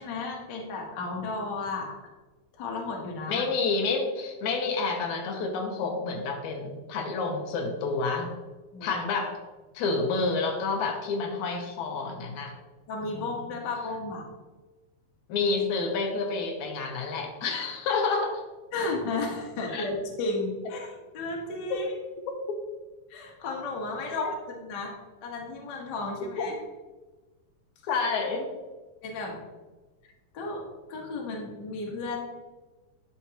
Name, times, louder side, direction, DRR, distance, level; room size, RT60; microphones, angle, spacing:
voice 1, 0.0-2.0 2.5-3.4 8.7-9.0 12.9-14.3 18.7-21.9 23.1-24.9 25.2-26.5 29.0-29.4 30.3-32.2, left 2 dB, 50° left, -1 dB, 1.4 m, -33 dB
voice 2, 3.3-8.3 8.8-9.3 9.7-12.5 15.3-18.4 19.7-19.9 21.7-21.8 22.5-22.6 24.2-24.3 26.4-26.5 27.9-28.5, left 4 dB, 80° left, 3 dB, 2.2 m, -29 dB
10.0 x 4.6 x 2.9 m, 1.2 s
omnidirectional pair, 3.4 m